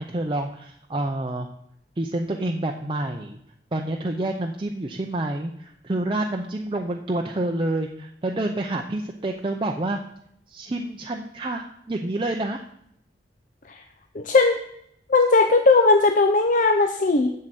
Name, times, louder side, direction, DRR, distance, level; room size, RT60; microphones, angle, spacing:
voice 1, 0.0-1.5 2.0-3.4 3.7-10.0 10.5-12.6, right 2 dB, 30° right, 2 dB, 0.6 m, -28 dB
voice 2, 14.1-14.6 15.1-17.3, left 3 dB, 45° left, 5 dB, 0.6 m, -18 dB
7.4 x 6.6 x 7.6 m, 0.73 s
head